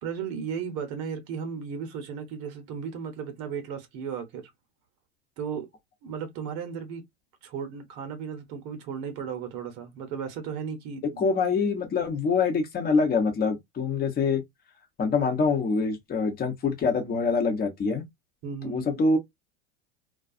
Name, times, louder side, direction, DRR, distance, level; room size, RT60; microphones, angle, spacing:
voice 1, 0.0-4.5 5.4-5.7 6.0-7.0 7.4-11.3 18.4-19.0, right 6 dB, 55° right, 0.9 m, -35 dB
voice 2, 11.2-14.4 15.0-18.1 18.6-19.2, left 4 dB, 25° left, 0.9 m, -25 dB
2.3 x 2.3 x 2.5 m
hypercardioid pair, 95°, 34 cm